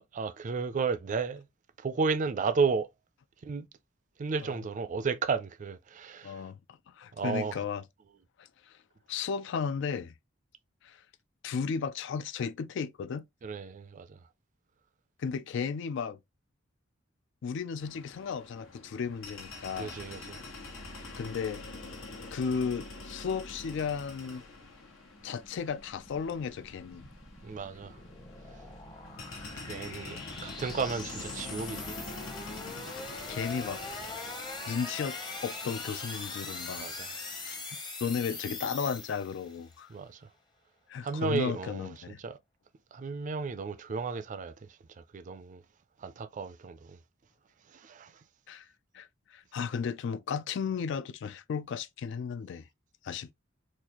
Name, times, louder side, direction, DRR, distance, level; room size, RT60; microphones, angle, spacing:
voice 1, 0.0-1.4 1.8-2.9 3.4-3.7 4.2-6.5 7.1-7.6 13.4-14.2 19.8-20.4 27.4-28.0 29.7-32.0 33.1-33.3 36.8-37.1 39.9-40.3 41.0-42.4 42.9-45.6 46.0-47.0 47.7-48.2, right 5 dB, 40° right, 0.4 m, -33 dB
voice 2, 6.2-6.6 7.0-7.8 8.4-8.8 9.1-10.1 10.8-11.0 11.4-13.3 15.2-16.2 17.4-19.9 21.2-21.6 22.3-24.4 25.2-27.1 32.9-33.8 34.7-36.9 37.5-37.6 38.0-39.9 40.9-42.2 48.5-48.7 48.9-52.7 53.0-53.3, left 6 dB, 65° left, 0.3 m, -34 dB
sound 1, 17.8-37.6, left 2 dB, 85° left, 1.2 m, -46 dB
sound 2, 25.1-39.6, left 3 dB, 25° left, 0.8 m, -42 dB
4.0 x 2.4 x 2.9 m
head